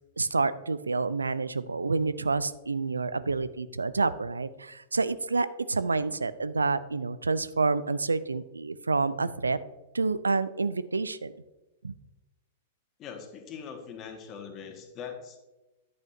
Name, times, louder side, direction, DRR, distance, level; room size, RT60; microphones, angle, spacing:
voice 1, 0.2-9.6 9.9-11.3 11.8-11.9, right 3 dB, 85° right, 15 dB, 0.4 m, -28 dB
voice 2, 13.0-15.4, left 7 dB, 30° left, 4 dB, 1.6 m, -42 dB
11.0 x 8.7 x 2.7 m, 1.1 s
figure-of-eight pair, 100°, 0 cm